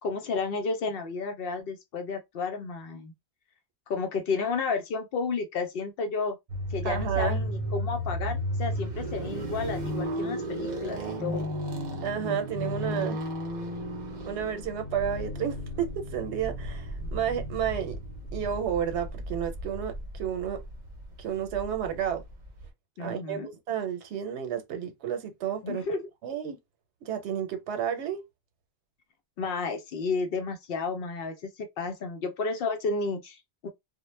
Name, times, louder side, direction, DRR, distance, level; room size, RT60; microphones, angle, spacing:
voice 1, 0.0-3.1 3.9-6.4 6.7-11.5 23.0-23.5 25.6-26.1 29.4-33.7, left 4 dB, 65° left, 0.7 m, -32 dB
sound 1, 6.5-22.7, equal, 50° right, 0.7 m, -34 dB
voice 2, 6.8-7.4 12.0-13.2 14.3-18.0 18.3-20.6 21.2-22.2 23.0-25.8 26.2-26.6 27.0-28.2, right 9 dB, 90° right, 0.9 m, -31 dB
2.1 x 2.0 x 3.1 m
omnidirectional pair, 1.1 m